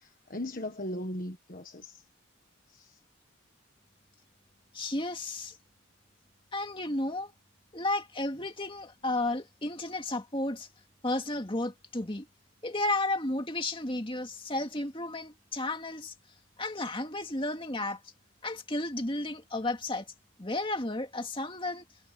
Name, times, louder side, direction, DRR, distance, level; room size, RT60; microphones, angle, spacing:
voice 1, 0.0-2.0 2.7-3.0, left 1 dB, 40° left, 1.6 m, -38 dB
voice 2, 4.7-5.6 6.5-7.3 7.7-10.7 11.0-12.3 12.6-16.1 16.6-18.1 18.4-20.1 20.4-21.9, left 2 dB, 25° left, 2.3 m, -33 dB
head